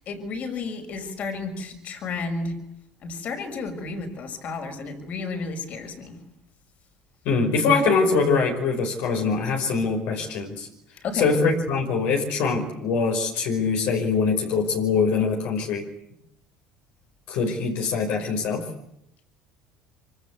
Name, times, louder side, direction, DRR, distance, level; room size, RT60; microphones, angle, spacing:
voice 1, 0.0-2.5 3.0-6.2 11.0-11.3, left 4 dB, 50° left, 6 dB, 5.9 m, -32 dB
voice 2, 7.3-10.7 11.1-15.8 17.3-18.6, left 4 dB, 70° left, 1 dB, 5.3 m, -23 dB
25.5 x 25.0 x 8.4 m, 0.76 s
supercardioid pair, 100°, 3 cm